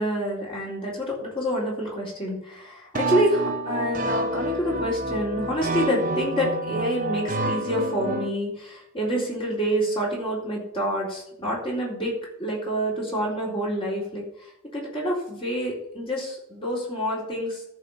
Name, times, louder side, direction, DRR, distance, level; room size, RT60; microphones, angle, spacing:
voice 1, 0.0-12.1 12.4-14.2 14.7-17.6, equal, 25° left, -4 dB, 3.9 m, -27 dB
sound 1, 2.9-8.3, right 2 dB, 35° right, 1.0 m, -28 dB
Keyboard (musical), 6.0-7.8, left 3 dB, 70° left, 4.1 m, -47 dB
13.5 x 4.9 x 7.1 m, 0.77 s
head